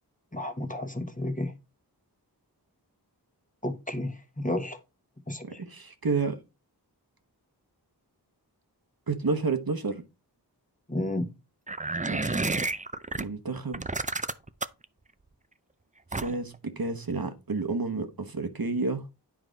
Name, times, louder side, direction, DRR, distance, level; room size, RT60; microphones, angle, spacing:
voice 1, 0.3-1.5 3.6-4.8 5.3-5.4 10.9-11.3, left 1 dB, 20° left, 1.3 m, -31 dB
voice 2, 5.4-6.4 9.1-10.0 12.1-12.5 13.2-13.9 16.1-19.0, right 4 dB, 60° right, 1.2 m, -30 dB
sound 1, 11.7-13.2 13.7-14.9 16.1-16.6, right 3 dB, 20° right, 0.5 m, -30 dB
9.7 x 4.8 x 3.9 m
wide cardioid pair, 45°, 41 cm